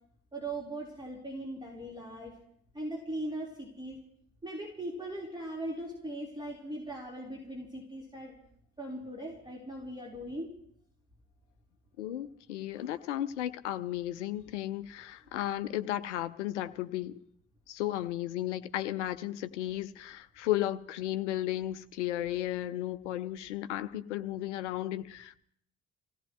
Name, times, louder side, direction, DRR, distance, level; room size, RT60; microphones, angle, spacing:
voice 1, 0.3-2.3 2.7-4.0 4.4-8.3 8.8-10.5 12.7-12.8, right 1 dB, 10° right, 4.4 m, -39 dB
voice 2, 12.0-17.2 17.7-25.4, left 13 dB, 75° left, 0.7 m, -34 dB
27.0 x 17.0 x 3.2 m
figure-of-eight pair, 45°, 36 cm